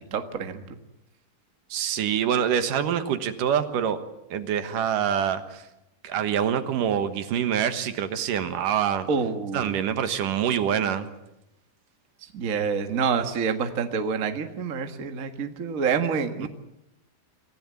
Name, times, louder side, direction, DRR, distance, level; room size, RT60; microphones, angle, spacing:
voice 1, 0.1-0.6 9.1-9.8 12.3-16.5, right 6 dB, 85° right, 6 dB, 0.7 m, -27 dB
voice 2, 1.7-4.0 4.3-5.6 6.0-9.1 9.5-11.1 16.4-16.5, right 9 dB, 65° right, 9 dB, 2.7 m, -25 dB
26.5 x 16.0 x 9.4 m, 0.90 s
omnidirectional pair, 4.3 m